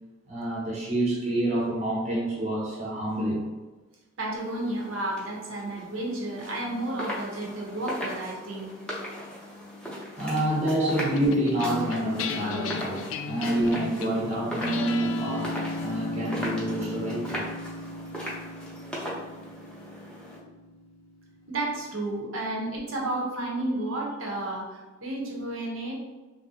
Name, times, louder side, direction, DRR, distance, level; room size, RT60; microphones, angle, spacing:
voice 1, 0.3-3.5 10.2-17.5, right 1 dB, 30° right, -5 dB, 0.6 m, -28 dB
voice 2, 4.2-8.7 10.8-10.9 21.5-25.9, right 2 dB, 75° right, -2 dB, 0.8 m, -32 dB
sound 1, 4.4-20.4, equal, 5° left, 0.5 m, -39 dB
sound 2, 11.2-21.8, left 4 dB, 75° left, 0.3 m, -36 dB
3.0 x 2.6 x 2.7 m, 1.2 s
head